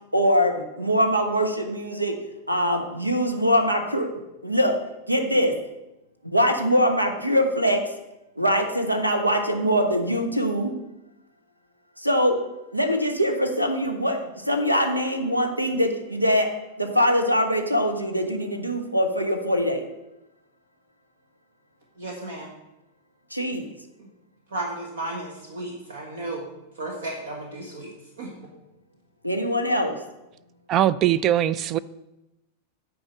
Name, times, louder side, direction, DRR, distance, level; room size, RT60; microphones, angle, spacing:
voice 1, 0.1-2.2 2.5-4.1 4.4-4.8 5.1-5.6 6.2-7.8 8.4-10.7 12.0-12.4 12.7-16.5 16.8-19.9 23.3-23.7 29.2-30.0, equal, 90° right, 5 dB, 1.1 m, -23 dB
voice 2, 21.9-22.5 24.0-24.1 24.5-26.5 26.7-28.5, right 2 dB, 65° right, 1 dB, 1.3 m, -34 dB
voice 3, 30.7-31.8, right 11 dB, 35° right, 18 dB, 0.3 m, -21 dB
8.8 x 4.8 x 7.5 m, 0.94 s
figure-of-eight pair, 90°, 0 cm